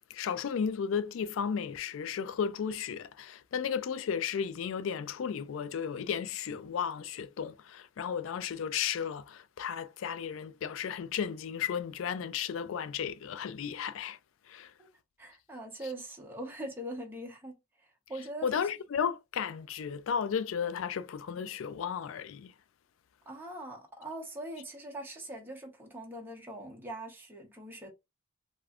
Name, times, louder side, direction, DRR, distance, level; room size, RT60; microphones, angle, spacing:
voice 1, 0.1-14.2 14.5-14.7 18.4-22.5, left 7 dB, 70° left, 0.3 m, -34 dB
voice 2, 15.2-18.7 23.3-27.9, right 1 dB, 10° right, 0.8 m, -42 dB
3.3 x 2.5 x 2.4 m
head